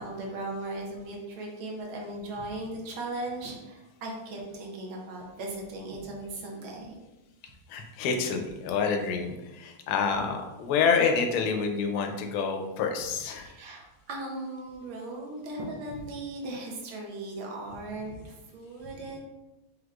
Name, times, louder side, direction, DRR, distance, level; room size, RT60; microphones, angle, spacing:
voice 1, 0.0-7.0 13.4-19.2, right 2 dB, 70° right, -1 dB, 1.5 m, -38 dB
voice 2, 7.7-13.5, left 5 dB, 80° left, 4 dB, 1.4 m, -28 dB
5.2 x 3.3 x 2.4 m, 1.0 s
omnidirectional pair, 2.4 m